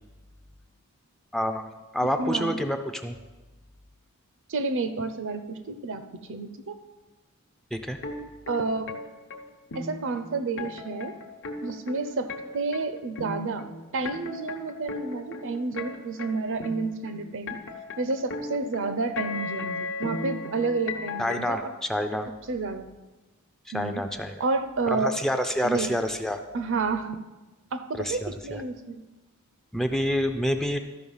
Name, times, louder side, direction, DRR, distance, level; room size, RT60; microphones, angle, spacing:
voice 1, 1.3-1.7 1.9-3.2 7.7-8.0 21.2-22.3 23.7-24.4 24.9-26.4 27.9-28.6 29.7-30.8, equal, ahead, 6 dB, 0.5 m, -28 dB
voice 2, 2.2-2.6 4.5-6.8 8.5-9.0 9.7-11.2 11.6-13.7 13.9-17.6 18.0-21.7 22.5-22.9 23.7-24.0 24.4-25.2 25.6-25.9 26.5-27.2 27.7-29.0, right 3 dB, 60° right, 10 dB, 0.7 m, -30 dB
sound 1, 8.0-21.5, left 3 dB, 60° left, 0.9 m, -36 dB
13.0 x 5.4 x 5.5 m, 1.1 s
head